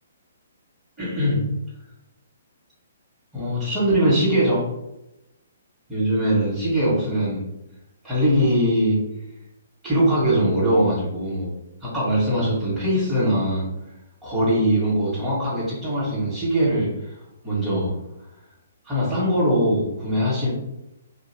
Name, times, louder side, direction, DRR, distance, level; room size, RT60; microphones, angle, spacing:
voice 1, 1.0-1.4 3.3-4.7 5.9-7.4 8.0-9.0 9.8-11.5 11.8-13.7 14.2-16.9 17.4-17.9 18.8-20.5, equal, 15° right, -13 dB, 1.4 m, -21 dB
2.7 x 2.7 x 2.8 m, 0.90 s
figure-of-eight pair, 125°, 0 cm